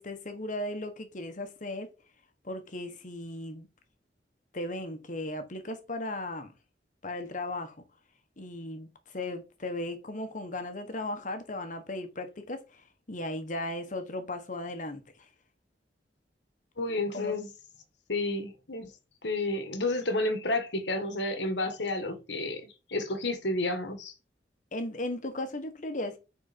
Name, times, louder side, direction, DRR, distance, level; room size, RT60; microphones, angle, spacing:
voice 1, 0.0-1.9 2.4-3.7 4.5-6.5 7.0-7.8 8.4-15.3 17.1-17.3 24.7-26.2, left 1 dB, 45° left, 1.3 m, -36 dB
voice 2, 16.8-17.5 18.1-18.9 19.2-24.1, left 2 dB, 80° left, 1.7 m, -31 dB
8.9 x 4.4 x 4.4 m
head